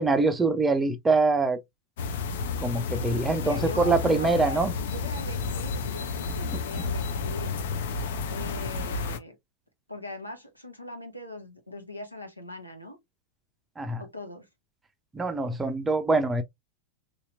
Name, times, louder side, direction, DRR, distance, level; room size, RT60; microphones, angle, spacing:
voice 1, 0.0-1.6 2.6-4.7 13.8-14.0 15.1-16.4, right 3 dB, 15° right, 0.5 m, -24 dB
sound 1, 2.0-9.2, left 4 dB, 55° left, 0.5 m, -31 dB
voice 2, 3.4-7.6 8.3-9.3 9.9-13.0 14.0-14.5, left 1 dB, 85° left, 1.0 m, -40 dB
3.1 x 2.8 x 2.6 m
figure-of-eight pair, 90°, 0 cm